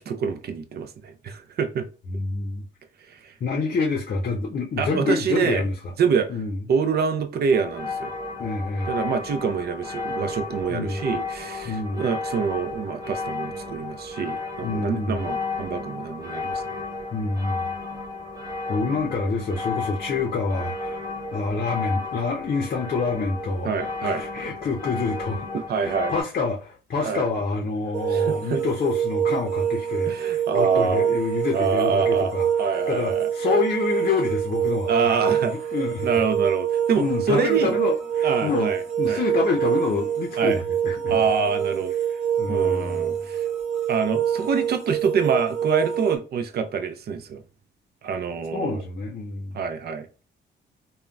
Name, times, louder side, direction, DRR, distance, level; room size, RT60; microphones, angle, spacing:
voice 1, 0.0-1.9 3.1-3.3 4.8-5.6 6.0-6.3 6.7-8.1 8.9-16.6 23.6-24.2 25.5-26.1 27.0-27.2 28.1-28.6 30.1-31.1 31.5-32.3 32.6-33.6 34.9-35.5 36.0-37.8 38.2-39.2 40.4-40.6 41.1-42.2 42.5-43.4 43.9-47.4 48.0-48.8 49.5-50.2, right 6 dB, 55° right, 0.5 m, -26 dB
voice 2, 2.1-2.6 3.4-5.9 6.3-6.6 8.4-8.9 10.7-11.1 11.6-12.0 14.6-15.3 17.1-17.6 18.7-23.7 24.0-35.2 35.5-36.2 37.0-38.7 39.0-41.2 42.4-43.3 48.5-49.6, left 4 dB, 45° left, 0.6 m, -27 dB
sound 1, 7.5-26.2, left 3 dB, 15° right, 1.2 m, -33 dB
sound 2, 27.9-46.2, right 9 dB, 35° right, 0.9 m, -25 dB
3.6 x 2.1 x 2.2 m
cardioid pair, 90°, 20 cm